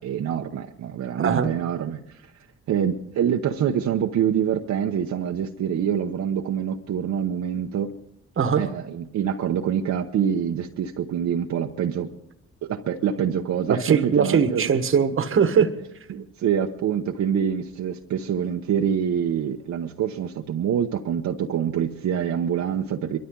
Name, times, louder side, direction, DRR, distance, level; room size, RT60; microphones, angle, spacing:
voice 1, 0.0-2.3 2.7-7.9 8.6-12.1 12.6-14.6 16.1-23.2, right 8 dB, 65° right, 2 dB, 1.0 m, -25 dB
voice 2, 1.2-1.5 8.4-8.6 13.7-15.7, right 6 dB, 45° right, 9 dB, 1.4 m, -20 dB
23.0 x 13.0 x 3.9 m, 0.78 s
cardioid pair, 90°, 30 cm